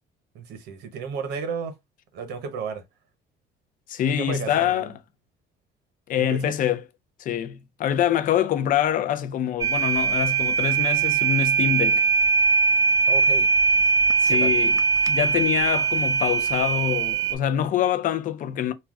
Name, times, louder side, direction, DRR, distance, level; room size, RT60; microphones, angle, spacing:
voice 1, 0.3-1.7 2.1-2.8 4.2-4.9 6.2-6.4 13.1-13.5 14.3-14.5, right 5 dB, 80° right, 0.8 m, -33 dB
voice 2, 3.9-4.9 6.1-6.8 7.2-12.0 14.2-14.7 15.1-18.7, left 10 dB, 55° left, 0.4 m, -25 dB
sound 1, 9.6-17.4, right 5 dB, 20° right, 0.3 m, -21 dB
2.3 x 2.1 x 3.5 m
cardioid pair, 110°, 17 cm